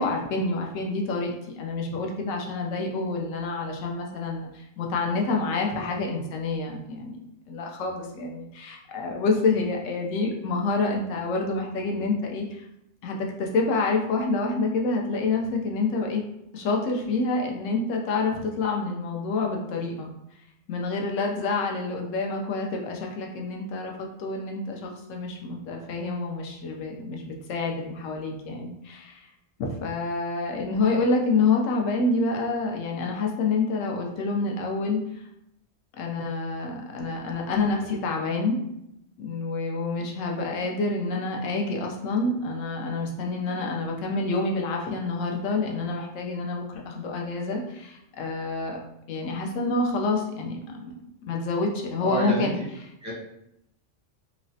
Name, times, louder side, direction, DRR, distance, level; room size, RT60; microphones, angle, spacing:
voice 1, 0.0-7.2 7.5-12.6 13.0-16.2 16.5-20.1 20.7-29.3 29.6-35.3 35.9-38.6 39.2-48.8 49.1-50.9 51.3-52.6, left 3 dB, 80° left, 1 dB, 1.0 m, -28 dB
voice 2, 52.0-52.5 53.0-53.1, right 2 dB, 20° right, -5 dB, 0.5 m, -28 dB
3.1 x 2.0 x 2.7 m, 0.79 s
omnidirectional pair, 1.3 m